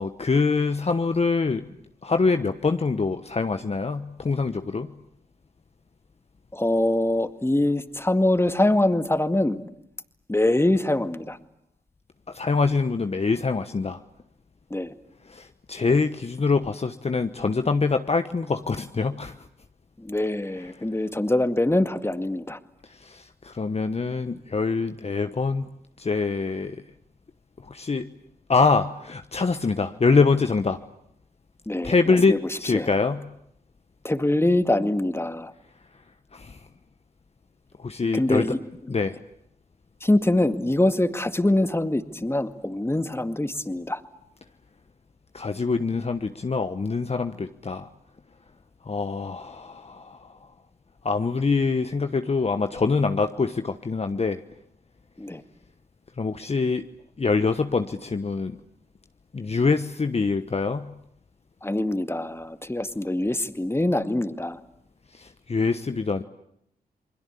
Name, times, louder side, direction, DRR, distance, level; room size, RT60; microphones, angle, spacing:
voice 1, 0.0-1.6 2.0-4.9 12.3-14.0 15.3-19.4 20.6-20.7 22.9-25.7 26.0-26.8 27.6-28.1 28.5-30.8 31.8-33.3 36.3-36.6 37.8-38.5 38.9-39.2 45.3-47.9 48.8-50.4 51.0-54.4 56.2-56.8 57.2-58.6 59.3-60.9 65.1-66.2, left 4 dB, 40° left, 8 dB, 1.1 m, -24 dB
voice 2, 6.5-9.6 10.3-11.4 14.7-14.9 20.0-22.6 31.7-32.8 34.0-35.5 38.1-38.7 40.0-44.0 55.2-55.4 61.6-64.6, left 1 dB, 15° left, 10 dB, 2.0 m, -24 dB
28.5 x 21.5 x 8.5 m, 0.74 s
cardioid pair, 50°, 17 cm